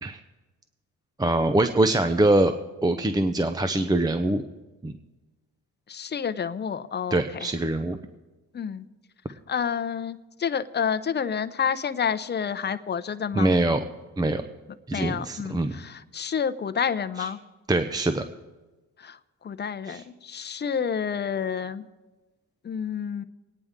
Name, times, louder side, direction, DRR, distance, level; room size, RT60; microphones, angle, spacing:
voice 1, 1.2-2.5 2.8-4.4 4.8-4.9 7.1-8.0 13.3-13.8 14.2-14.4 14.9-15.8 17.2-17.3 17.7-18.2 19.9-20.0, right 2 dB, 10° right, 8 dB, 0.6 m, -23 dB
voice 2, 5.9-7.5 8.5-8.9 9.5-13.5 14.9-17.4 19.0-19.2 19.4-21.9 22.6-23.2, left 7 dB, 30° left, 12 dB, 0.7 m, -29 dB
22.0 x 9.6 x 3.6 m, 1.2 s
cardioid pair, 90°, 33 cm